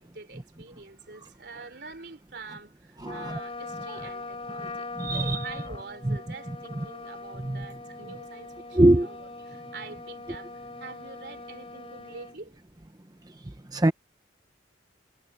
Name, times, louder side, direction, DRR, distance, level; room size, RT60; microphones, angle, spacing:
voice 1, 0.0-12.6, right 3 dB, 60° right, 3.8 m, -45 dB
Trumpet, 3.0-12.4, left 2 dB, 30° left, 4.8 m, -41 dB
voice 2, 3.0-3.4 5.0-5.4 6.0-6.2 7.4-7.7 8.7-9.1 13.7-13.9, right 1 dB, 20° right, 0.7 m, -22 dB
head